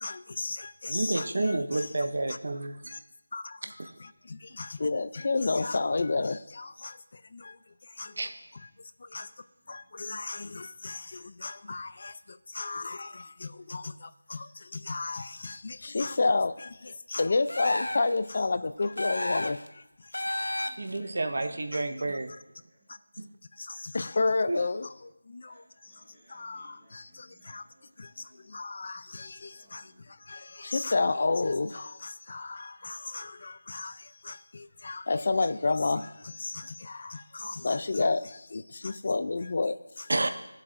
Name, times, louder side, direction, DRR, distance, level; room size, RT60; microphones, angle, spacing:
voice 1, 0.0-1.9 2.9-3.0 3.3-3.7 4.0-7.6 7.9-8.2 8.5-8.7 9.0-9.3 9.7-19.8 20.3-20.7 21.7-21.9 22.9-23.0 23.6-25.9 26.3-27.6 28.0-40.1, left 3 dB, 35° left, 14 dB, 0.4 m, -32 dB
voice 2, 0.9-2.8 3.6-3.9 8.2-8.3 20.8-22.3 23.2-23.3 24.5-24.6 40.1-40.3, right 2 dB, 50° right, 7 dB, 0.7 m, -30 dB
voice 3, 7.9-8.4 9.3-9.8 18.8-19.0 20.4-22.2 22.7-23.0 25.4-28.5 29.4-30.0, equal, 5° right, -13 dB, 2.3 m, -61 dB
sound 1, 17.5-18.2 19.0-19.7 20.1-21.0, left 1 dB, 85° left, 0.7 m, -32 dB
16.5 x 7.3 x 2.5 m, 0.93 s
figure-of-eight pair, 175°, 0 cm